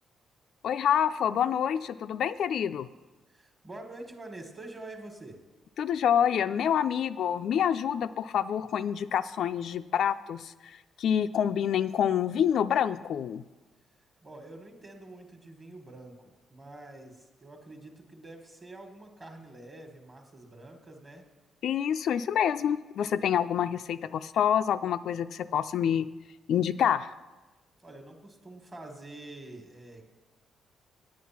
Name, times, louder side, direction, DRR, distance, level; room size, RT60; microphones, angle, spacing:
voice 1, 0.6-2.9 5.8-13.4 21.6-26.1 26.5-27.1, left 9 dB, 65° left, 10 dB, 0.3 m, -27 dB
voice 2, 3.3-5.4 14.2-21.3 27.8-30.0, right 2 dB, 20° right, 4 dB, 1.4 m, -46 dB
9.4 x 8.7 x 5.8 m, 1.1 s
cardioid pair, 150°, 0 cm